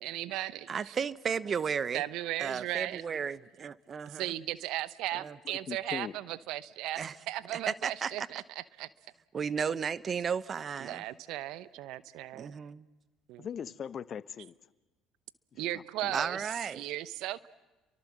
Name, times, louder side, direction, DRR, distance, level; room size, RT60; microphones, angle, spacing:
voice 1, 0.0-0.9 1.9-3.0 4.1-8.9 10.8-12.5 13.3-13.5 15.6-17.5, right 15 dB, 65° right, 0.8 m, -37 dB
voice 2, 0.7-2.0 2.4-4.3 5.1-5.3 7.0-7.1 7.8-8.3 9.3-11.0 12.3-12.8 16.1-16.8, right 6 dB, 40° right, 0.9 m, -34 dB
voice 3, 5.7-6.1 13.4-14.5 15.7-16.2, left 8 dB, 45° left, 0.9 m, -40 dB
30.0 x 24.0 x 7.5 m
hypercardioid pair, 60°, 0 cm